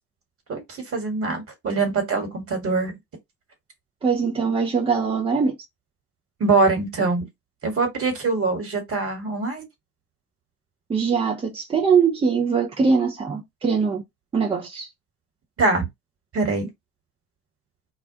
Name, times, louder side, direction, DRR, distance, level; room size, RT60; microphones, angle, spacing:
voice 1, 0.9-2.9 6.4-7.2 7.6-9.7 15.6-15.9 16.3-16.7, right 3 dB, 30° right, 1.4 m, -23 dB
voice 2, 4.0-5.5 10.9-14.0 14.3-14.9, right 5 dB, 15° right, 0.4 m, -22 dB
2.3 x 2.1 x 2.7 m
hypercardioid pair, 80°, 44 cm